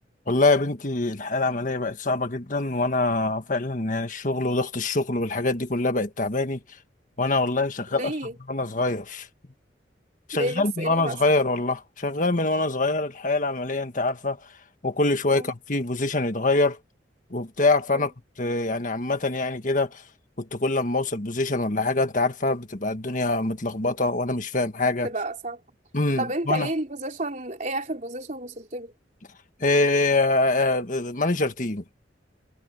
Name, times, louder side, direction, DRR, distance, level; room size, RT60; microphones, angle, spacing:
voice 1, 0.3-6.6 7.2-8.1 8.5-9.3 10.3-14.4 14.8-16.8 17.3-20.0 20.4-25.1 25.9-26.7 29.6-31.8, left 2 dB, 45° left, 1.7 m, -24 dB
voice 2, 7.9-8.3 10.3-11.2 15.3-15.5 17.9-18.1 25.0-25.6 26.2-28.9, right 2 dB, 40° right, 3.9 m, -31 dB
head